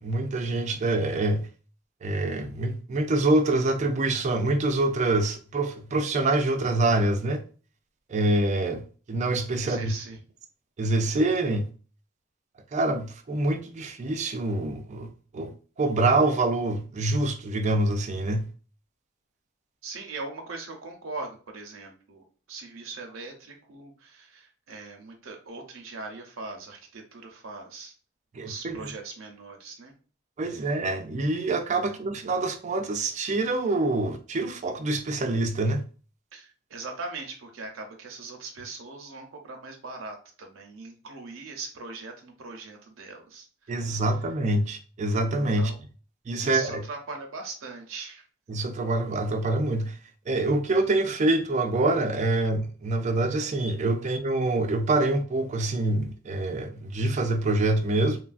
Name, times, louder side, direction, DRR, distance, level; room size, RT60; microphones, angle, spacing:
voice 1, 0.0-1.5 2.0-7.4 8.1-8.8 9.1-9.9 10.8-11.7 12.7-15.5 15.8-18.5 28.3-28.9 30.4-35.8 43.7-45.7 46.3-46.8 48.5-50.0 50.3-58.2, right 2 dB, 35° right, 0.4 m, -25 dB
voice 2, 9.6-10.2 19.8-27.9 28.4-29.9 30.4-30.7 36.3-44.1 45.5-45.8 46.4-48.2, right 3 dB, 85° right, 0.6 m, -40 dB
3.0 x 2.3 x 2.4 m
head